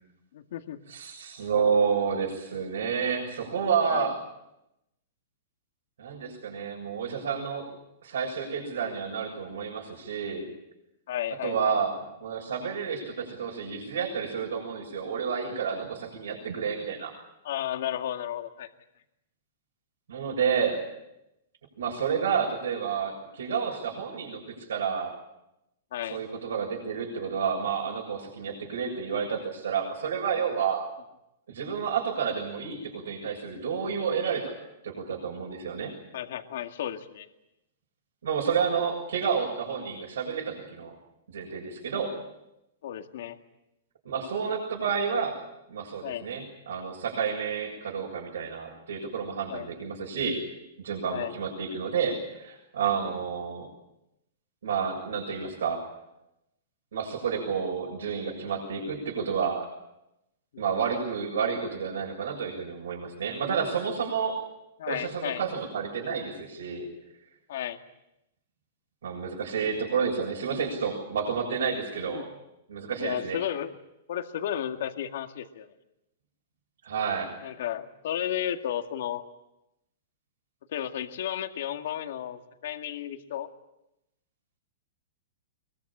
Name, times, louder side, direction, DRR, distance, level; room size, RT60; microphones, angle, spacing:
voice 1, 0.3-0.8 3.9-4.1 11.1-11.8 17.4-18.7 25.9-26.2 30.4-30.5 36.1-37.3 42.8-43.4 46.0-46.2 49.5-49.7 51.1-51.3 52.9-53.1 60.5-60.6 64.8-65.4 67.5-67.8 72.0-72.3 73.0-73.7 74.1-75.7 77.4-79.2 80.7-83.5, left 10 dB, 65° left, 6 dB, 2.0 m, -33 dB
voice 2, 0.9-4.2 6.0-7.7 8.0-10.5 11.4-17.1 20.1-20.8 21.8-25.1 26.1-30.9 31.5-34.5 34.8-35.9 38.2-40.9 41.3-42.1 44.0-45.4 45.7-50.4 50.8-53.7 54.6-55.9 56.9-59.7 60.6-64.4 64.9-66.9 69.0-72.3 72.7-73.4 76.8-77.3, right 6 dB, 85° right, -1 dB, 7.1 m, -30 dB
22.5 x 22.0 x 8.8 m, 0.88 s
hypercardioid pair, 160°, 0 cm